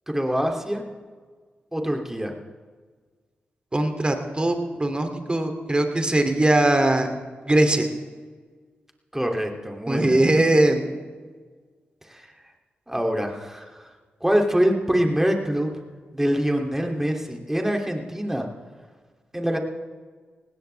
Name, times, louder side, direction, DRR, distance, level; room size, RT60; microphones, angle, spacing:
voice 1, 0.1-0.8 1.7-2.3 9.1-10.2 12.1-12.3 12.9-13.8 14.2-15.7 16.1-18.5 19.3-19.6, equal, 10° right, 2 dB, 2.8 m, -24 dB
voice 2, 3.7-7.1 7.5-7.9 9.9-10.9, right 1 dB, 25° right, 5 dB, 2.7 m, -20 dB
19.0 x 16.5 x 3.4 m, 1.5 s
supercardioid pair, 40°, 4 cm